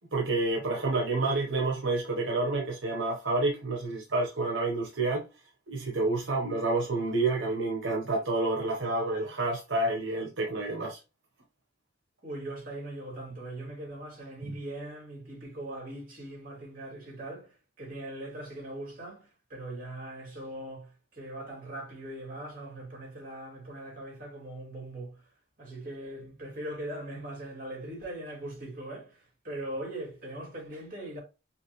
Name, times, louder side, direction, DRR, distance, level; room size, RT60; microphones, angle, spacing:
voice 1, 0.1-5.3 5.7-11.0 14.4-14.6, right 2 dB, 70° right, 1.0 m, -29 dB
voice 2, 12.2-17.5 17.8-25.2 25.6-29.1 29.4-31.2, right 1 dB, 45° right, 2.7 m, -40 dB
5.8 x 2.5 x 3.1 m
head